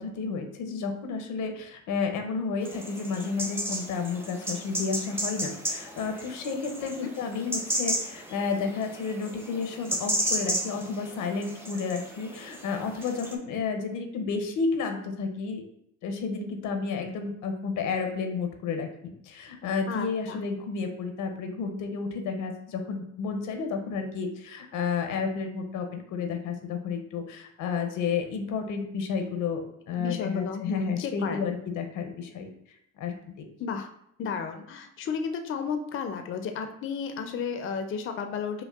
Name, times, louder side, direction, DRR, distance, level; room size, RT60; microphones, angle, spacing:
voice 1, 0.0-15.6 16.0-32.5 33.0-33.5, left 5 dB, 85° left, 5 dB, 0.6 m, -31 dB
sound 1, 2.6-13.3, equal, 10° right, 0.6 m, -34 dB
voice 2, 19.9-20.4 30.0-31.5 33.6-33.9 34.2-38.6, left 6 dB, 45° left, 6 dB, 0.4 m, -33 dB
5.2 x 2.1 x 2.3 m, 0.72 s
cardioid pair, 90°, 30 cm